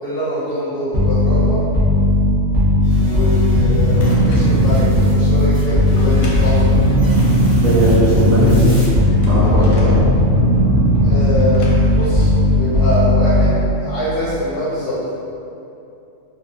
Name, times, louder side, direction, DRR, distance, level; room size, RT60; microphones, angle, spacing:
voice 1, 0.0-1.6 3.0-6.8 11.0-11.6 11.9-15.0, equal, 60° left, -10 dB, 0.6 m, -24 dB
sound 1, 0.9-13.8, left 1 dB, 60° right, 0.8 m, -15 dB
sound 2, 2.8-8.9, equal, 10° right, 0.8 m, -35 dB
Drawer open or close, 3.3-4.6 5.7-7.4 8.7-10.1 11.4-13.0, right 1 dB, 90° left, 1.0 m, -28 dB
voice 2, 7.6-8.7 9.3-10.0, right 1 dB, 85° right, -8 dB, 1.2 m, -17 dB
3.0 x 2.2 x 2.5 m, 2.8 s
omnidirectional pair, 1.4 m